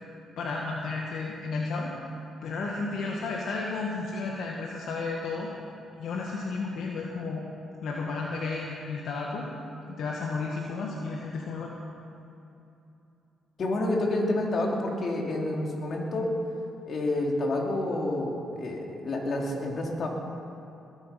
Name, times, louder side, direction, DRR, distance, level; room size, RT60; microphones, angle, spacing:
voice 1, 0.4-1.9 2.4-5.5 6.0-7.4 7.8-9.5 9.9-11.7, left 3 dB, 70° left, -2 dB, 1.6 m, -32 dB
voice 2, 13.6-16.3 16.9-20.1, left 1 dB, 50° left, -1 dB, 3.0 m, -29 dB
21.0 x 9.0 x 5.8 m, 2.8 s
cardioid pair, 90°, 0 cm